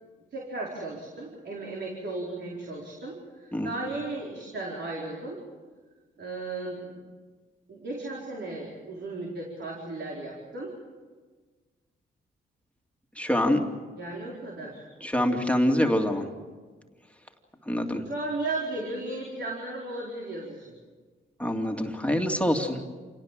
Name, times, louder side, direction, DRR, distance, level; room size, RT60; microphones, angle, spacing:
voice 1, 0.3-5.4 6.2-7.0 7.7-10.7 14.0-14.8 18.0-20.7, right 2 dB, 60° right, -3 dB, 4.6 m, -35 dB
voice 2, 13.2-13.7 15.0-16.3 17.7-18.0 21.4-22.8, left 1 dB, 5° left, 2 dB, 2.7 m, -25 dB
28.0 x 18.0 x 7.6 m, 1.4 s
cardioid pair, 70°, 20 cm